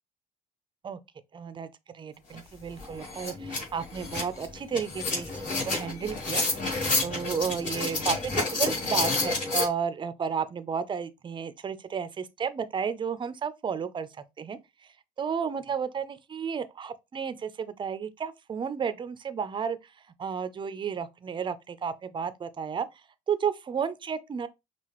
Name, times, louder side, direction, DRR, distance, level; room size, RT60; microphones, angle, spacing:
voice 1, 1.3-1.7 1.9-14.1 14.4-14.6 15.2-19.8 20.2-22.9 23.3-24.5, right 6 dB, 30° right, 0.5 m, -32 dB
sound 1, 2.4-2.5 2.8-9.7, left 3 dB, 50° left, 2.4 m, -29 dB
5.7 x 2.4 x 3.0 m
cardioid pair, 110°, 17 cm